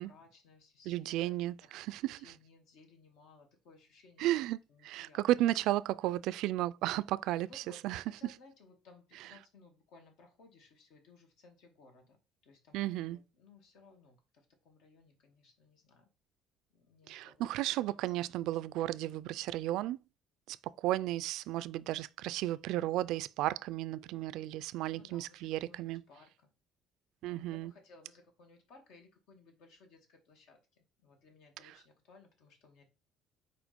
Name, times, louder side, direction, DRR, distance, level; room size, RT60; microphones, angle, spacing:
voice 1, 0.0-1.7 2.2-4.3 4.7-5.2 5.6-5.7 7.5-12.2 12.4-16.1 16.7-18.1 24.9-26.5 27.2-32.8, left 3 dB, 75° left, 2.1 m, -61 dB
voice 2, 0.9-2.3 4.2-7.5 7.8-8.0 12.7-13.2 17.1-20.0 20.5-20.6 20.8-26.0 27.2-27.7, right 15 dB, 75° right, 0.3 m, -34 dB
5.0 x 4.5 x 5.2 m
cardioid pair, 145°, 0 cm